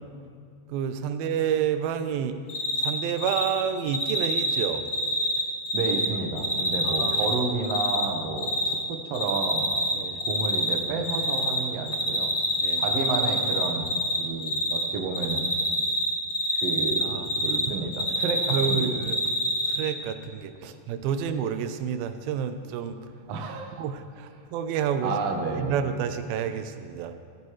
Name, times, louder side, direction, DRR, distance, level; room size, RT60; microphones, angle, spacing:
voice 1, 0.7-2.4 2.8-4.9 6.8-7.3 9.9-10.2 12.6-12.9 17.0-17.3 17.7-17.8 18.5-19.2 19.7-23.0 23.8-25.1 25.5-27.2, right 8 dB, 85° right, 9 dB, 2.5 m, -29 dB
Cricket, 2.5-2.9 3.2-3.5 3.9-6.1 6.4-8.0 8.4-8.7 9.1-9.9 10.2-11.6 11.9-14.2 14.4-14.8 15.1-17.7 17.9-19.8, left 1 dB, 35° left, 1.9 m, -26 dB
voice 2, 5.7-9.7 10.2-12.3 12.8-15.5 16.5-18.9 23.3-23.7 25.0-25.8, right 4 dB, 60° right, 3 dB, 1.8 m, -31 dB
19.0 x 13.5 x 3.1 m, 2.1 s
omnidirectional pair, 4.1 m